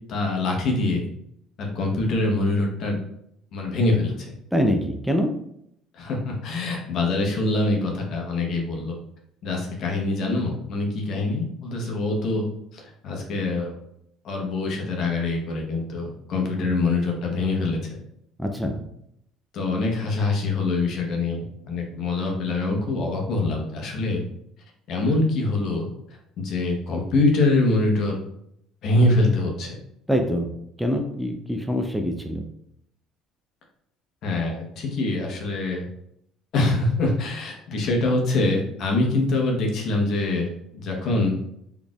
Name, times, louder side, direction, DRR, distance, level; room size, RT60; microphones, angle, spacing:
voice 1, 0.1-1.1 1.6-3.0 3.5-4.3 5.9-9.0 9.4-12.5 12.7-13.8 14.2-17.8 19.5-24.2 24.9-25.9 26.4-28.2 28.8-29.8 34.2-35.9 36.5-41.3, left 2 dB, 60° left, 0 dB, 1.1 m, -24 dB
voice 2, 4.5-5.3 18.4-18.8 30.1-30.5 30.8-32.4, equal, 5° right, 4 dB, 0.5 m, -24 dB
4.1 x 3.4 x 2.4 m, 0.75 s
supercardioid pair, 80°, 0 cm